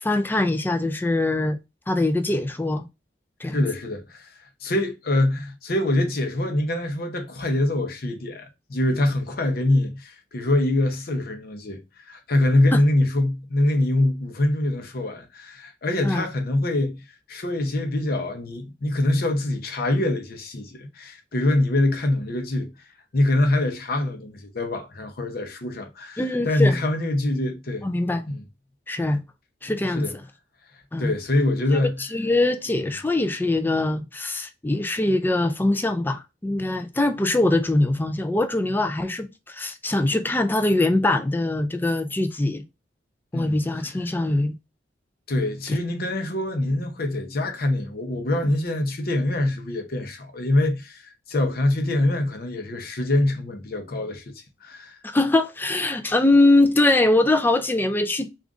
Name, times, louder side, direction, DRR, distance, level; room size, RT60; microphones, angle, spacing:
voice 1, 0.0-1.6 1.9-2.9 3.4-3.7 12.7-12.8 16.0-16.3 26.2-26.8 27.8-28.2 28.9-29.2 29.6-30.0 30.9-31.1 31.7-31.8 32.1-42.6 43.3-44.5 55.0-58.3, left 2 dB, 10° left, 0.4 m, -22 dB
voice 2, 3.5-22.7 23.1-27.9 28.3-28.4 29.9-30.1 31.0-32.0 43.3-43.6 45.3-55.0, left 1 dB, 55° left, 0.7 m, -24 dB
3.7 x 2.4 x 3.5 m
head